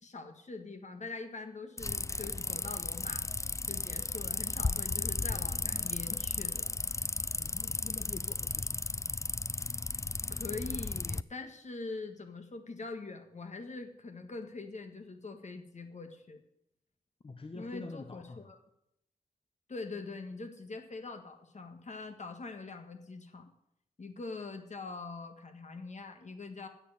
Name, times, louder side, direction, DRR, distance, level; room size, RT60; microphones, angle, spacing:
voice 1, 0.0-3.3 3.6-6.7 10.3-16.4 17.5-18.6 19.7-23.5 24.0-26.7, left 3 dB, 55° left, 6 dB, 1.6 m, -43 dB
sound 1, 1.8-11.2, left 3 dB, 20° left, 0.4 m, -35 dB
voice 2, 7.4-8.8 17.2-18.5, left 3 dB, 40° left, 6 dB, 1.0 m, -46 dB
9.9 x 7.0 x 8.9 m, 0.78 s
cardioid pair, 60°, 15 cm